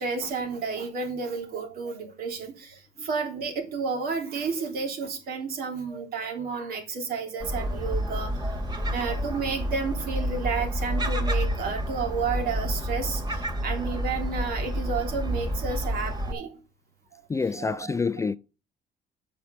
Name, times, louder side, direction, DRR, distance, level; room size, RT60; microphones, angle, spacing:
voice 1, 0.0-2.7 3.0-8.3 8.9-16.5 17.6-17.9, right 5 dB, 65° right, 3.2 m, -31 dB
Gull seagull, 7.4-16.3, equal, 25° right, 2.7 m, -29 dB
voice 2, 17.3-18.4, left 4 dB, 20° left, 0.4 m, -27 dB
8.2 x 6.0 x 6.3 m
cardioid pair, 110°, 17 cm